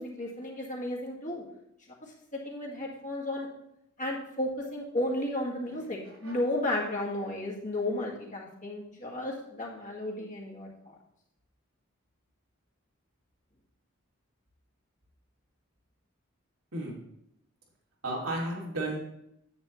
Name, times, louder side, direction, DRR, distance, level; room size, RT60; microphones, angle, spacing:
voice 1, 0.0-1.4 2.3-3.5 4.0-10.9, left 1 dB, 35° left, -2 dB, 1.8 m, -33 dB
voice 2, 5.7-6.4 16.7-17.0 18.0-19.0, right 1 dB, 85° right, -2 dB, 2.5 m, -34 dB
9.5 x 8.8 x 3.1 m, 0.77 s
head